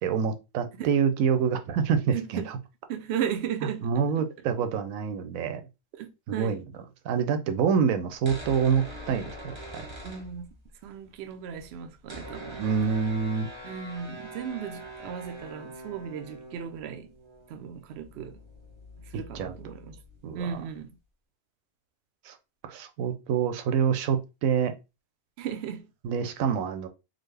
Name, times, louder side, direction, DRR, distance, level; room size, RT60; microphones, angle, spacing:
voice 1, 0.0-2.4 3.8-5.6 6.3-6.6 7.0-9.9 12.6-13.5 19.3-19.6 20.2-20.5 22.2-22.4 22.6-24.7 26.0-26.9, right 7 dB, 90° right, 1.0 m, -26 dB
voice 2, 2.1-2.5 2.9-4.1 6.0-6.6 10.0-10.5 10.8-12.6 13.6-17.1 17.5-18.4 19.0-20.0 20.3-21.0 25.4-25.9, right 8 dB, 65° right, 0.7 m, -36 dB
sound 1, 8.1-10.8 11.1-11.2 11.4-20.8, equal, 25° right, 0.8 m, -44 dB
3.8 x 2.1 x 3.3 m
omnidirectional pair, 1.4 m